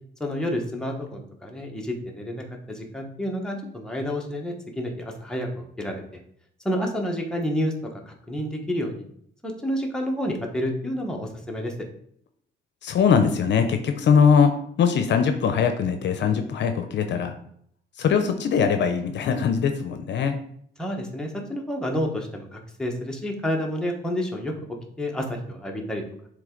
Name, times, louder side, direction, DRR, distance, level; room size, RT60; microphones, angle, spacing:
voice 1, 0.2-6.0 6.6-9.0 9.4-11.7 20.8-24.5 25.0-26.0, equal, 5° left, 0 dB, 1.2 m, -29 dB
voice 2, 12.8-17.3 18.0-20.4, left 6 dB, 65° left, 7 dB, 0.7 m, -21 dB
7.5 x 3.4 x 3.9 m, 0.66 s
cardioid pair, 90°, 20 cm